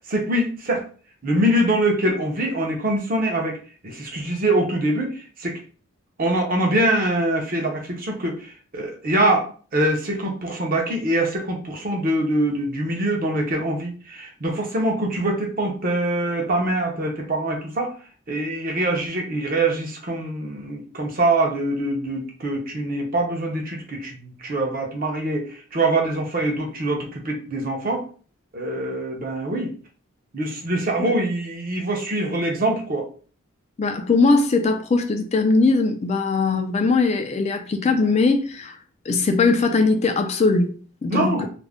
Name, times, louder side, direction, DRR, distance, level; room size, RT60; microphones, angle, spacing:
voice 1, 0.1-0.8 1.2-3.6 3.8-5.6 6.2-17.9 18.3-28.0 28.5-29.7 30.3-33.1 41.1-41.5, right 1 dB, 40° right, 0.6 m, -24 dB
voice 2, 33.8-38.8 39.1-40.7 41.0-41.5, left 3 dB, 30° left, 0.3 m, -20 dB
2.4 x 2.1 x 3.4 m
head